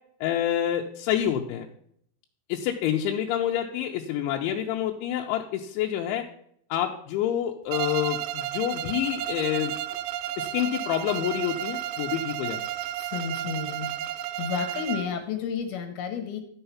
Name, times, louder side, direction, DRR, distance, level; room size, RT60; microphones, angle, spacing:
voice 1, 0.2-1.7 2.5-6.2 6.7-9.7 10.4-12.6, left 11 dB, 90° left, 1 dB, 3.1 m, -27 dB
Bowed string instrument, 7.7-15.2, right 13 dB, 85° right, 2.9 m, -32 dB
voice 2, 13.0-13.9 14.4-16.4, left 7 dB, 70° left, 6 dB, 2.6 m, -31 dB
12.0 x 5.7 x 5.6 m, 0.68 s
omnidirectional pair, 5.3 m